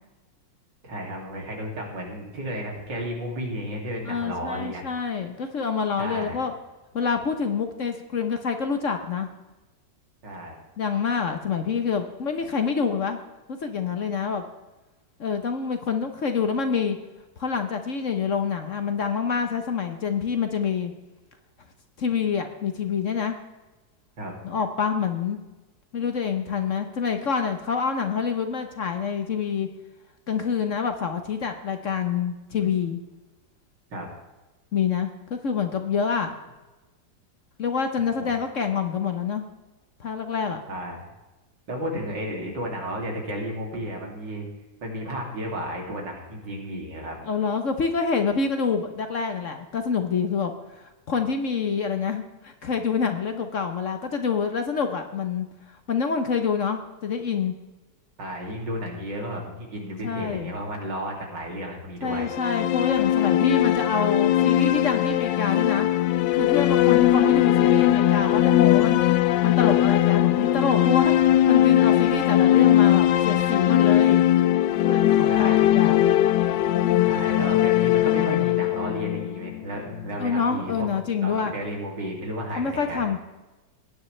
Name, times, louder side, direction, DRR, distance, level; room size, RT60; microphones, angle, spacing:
voice 1, 0.8-4.8 6.0-6.5 10.2-10.5 24.2-24.4 33.9-34.1 38.2-38.3 40.7-41.1 41.7-44.5 44.8-47.2 58.2-62.3 75.3-75.6 77.0-83.1, equal, 80° right, 0 dB, 3.3 m, -33 dB
voice 2, 4.1-6.5 6.9-9.3 10.8-13.2 13.5-14.4 15.2-17.0 17.4-20.9 22.0-23.4 24.4-25.4 25.9-29.7 30.3-33.0 34.7-36.4 37.6-39.4 40.0-40.6 47.3-55.5 55.9-57.5 60.0-60.5 62.0-65.9 66.3-69.0 69.4-74.2 74.8-76.0 76.7-77.1 80.2-81.5 82.6-83.2, left 6 dB, 50° left, 6 dB, 1.1 m, -27 dB
sound 1, 62.2-80.1, left 13 dB, 80° left, 1.2 m, -20 dB
18.5 x 9.9 x 3.2 m, 1.1 s
omnidirectional pair, 1.9 m